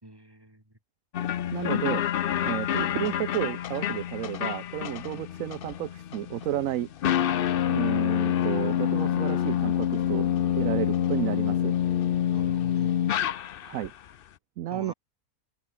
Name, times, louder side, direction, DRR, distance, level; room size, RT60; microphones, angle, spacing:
voice 1, 0.0-0.7 5.1-5.3 12.3-13.0 14.7-14.9, right 1 dB, 15° right, 4.3 m, -46 dB
sound 1, 1.1-13.9, left 10 dB, 70° left, 0.5 m, -27 dB
voice 2, 1.5-2.0 2.4-6.9 7.7-10.3 10.5-11.7 13.6-13.9 14.6-14.9, right 13 dB, 65° right, 1.0 m, -32 dB
open air
omnidirectional pair, 1.6 m